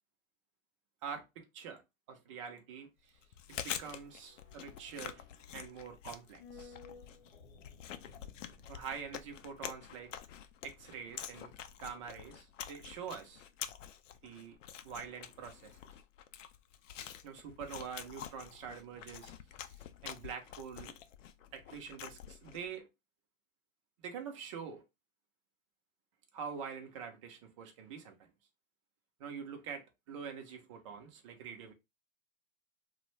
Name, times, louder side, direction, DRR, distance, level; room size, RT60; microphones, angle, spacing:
voice 1, 1.0-1.8 2.1-2.9 3.5-5.2 5.5-6.8 8.7-10.1 10.6-11.5 11.8-13.5 14.2-14.6 14.8-15.8 17.2-19.3 19.6-21.0 21.5-22.9 24.0-24.8 26.3-28.1 29.2-31.7, right 6 dB, 25° right, 0.4 m, -45 dB
sound 1, 3.0-13.4 13.7-13.8, left 4 dB, 45° left, 0.9 m, -59 dB
Chewing mastication, 3.2-22.7, left 9 dB, 65° left, 0.5 m, -47 dB
2.4 x 2.1 x 3.0 m
hypercardioid pair, 140°, 40 cm